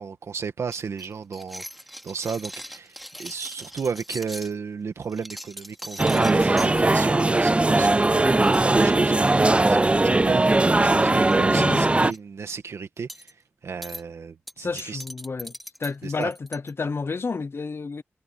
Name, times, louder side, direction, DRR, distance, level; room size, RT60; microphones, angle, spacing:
voice 1, 0.0-1.7 2.0-13.4 13.6-15.0 16.0-16.3, right 6 dB, 90° right, 2.0 m, -33 dB
sound 1, 0.7-4.5 5.0-6.7 7.2-7.5 7.7-7.9 8.1-8.2 8.4-9.8 10.5-10.9 11.2-11.4 11.7-12.2 13.1-13.3 13.8-14.0 14.5-16.7, equal, ahead, 3.1 m, -40 dB
sound 2, 6.0-12.1, right 2 dB, 25° right, 0.4 m, -19 dB
voice 2, 11.5-12.1 14.6-15.5 15.8-18.0, left 4 dB, 60° left, 0.9 m, -30 dB
cardioid pair, 50°, 5 cm